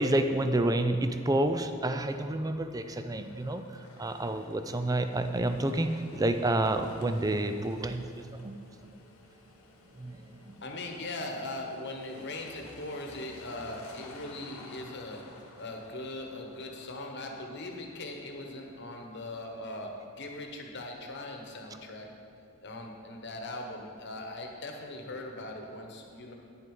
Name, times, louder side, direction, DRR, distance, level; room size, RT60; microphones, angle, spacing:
voice 1, 0.0-8.5 8.8-8.9 9.9-10.6, right 1 dB, 15° right, 8 dB, 0.4 m, -29 dB
sound 1, 2.8-19.8, left 2 dB, 85° left, 1.3 m, -54 dB
voice 2, 10.6-19.9 20.2-22.1 22.6-26.3, left 2 dB, 50° left, 2 dB, 1.2 m, -40 dB
9.8 x 7.8 x 5.5 m, 2.5 s
head